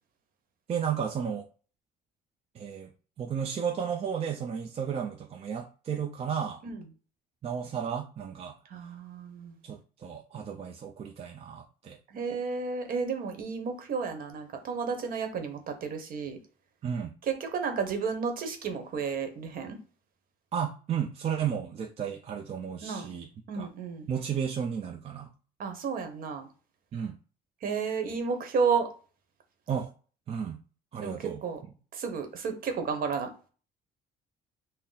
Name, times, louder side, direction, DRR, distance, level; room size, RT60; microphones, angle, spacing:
voice 1, 0.7-1.5 2.6-2.9 3.2-6.6 7.4-8.6 9.6-12.0 16.8-17.1 20.5-23.3 23.6-23.7 24.1-25.3 26.9-27.2 29.7-29.9 30.3-30.6 30.9-31.4, right 7 dB, 35° right, 0.5 m, -33 dB
voice 2, 8.6-9.6 12.1-16.4 17.2-19.8 22.8-23.1 23.5-24.1 25.6-26.5 27.6-28.9 31.0-31.6 31.9-33.3, right 5 dB, 55° right, 1.0 m, -32 dB
3.8 x 2.0 x 4.0 m
cardioid pair, 110°, 17 cm